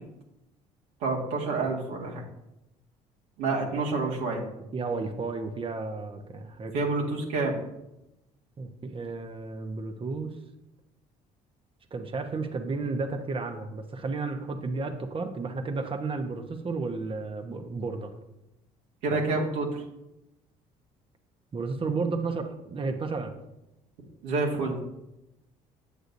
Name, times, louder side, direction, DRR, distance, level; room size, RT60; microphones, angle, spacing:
voice 1, 1.0-2.2 3.4-4.4 6.7-7.5 19.0-19.8 24.2-24.8, right 3 dB, 85° right, -2 dB, 1.9 m, -28 dB
voice 2, 4.7-6.7 8.6-10.4 11.9-18.1 21.5-23.4, right 3 dB, 35° right, 7 dB, 1.0 m, -32 dB
8.2 x 7.8 x 2.7 m, 0.92 s
supercardioid pair, 75°, 16 cm